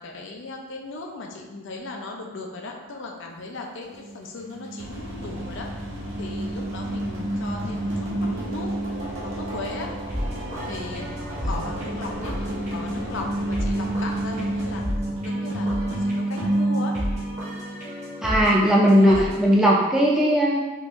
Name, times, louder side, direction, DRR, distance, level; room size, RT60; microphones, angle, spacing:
voice 1, 0.0-5.7 6.2-8.7 9.2-9.9 10.7-12.4 12.7-14.8 15.2-17.0 18.9-19.2, left 2 dB, 55° left, 1 dB, 0.4 m, -37 dB
sound 1, 3.8-18.0, right 1 dB, 80° right, 1.1 m, -30 dB
sound 2, 4.8-14.8, equal, 60° right, 0.7 m, -38 dB
sound 3, 10.1-19.6, equal, 30° right, 0.9 m, -33 dB
voice 2, 18.2-20.6, equal, ahead, -5 dB, 0.4 m, -18 dB
3.5 x 2.5 x 3.0 m, 1.2 s
head